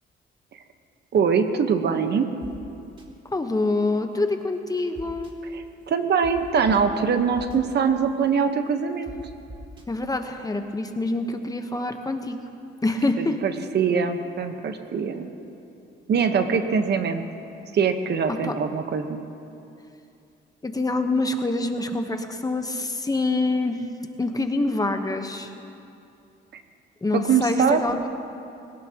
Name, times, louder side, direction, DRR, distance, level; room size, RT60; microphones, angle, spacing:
voice 1, 1.1-2.3 5.5-9.1 13.2-15.3 16.1-17.2 17.7-19.2 26.5-26.6 27.1-27.8, right 6 dB, 60° right, 7 dB, 1.2 m, -23 dB
sound 1, 2.4-2.5 3.0-3.1 4.9-5.3 6.2-6.3 6.6-6.7 7.4-7.6 9.1-9.2 9.5-9.8, right 2 dB, 25° right, 2.3 m, -41 dB
voice 2, 3.3-5.3 9.9-12.4 12.8-13.4 18.4-18.5 20.6-23.9 24.2-25.5 27.0-28.1, left 2 dB, 20° left, 5 dB, 1.1 m, -26 dB
21.5 x 17.5 x 3.0 m, 2.7 s
cardioid pair, 90°, 20 cm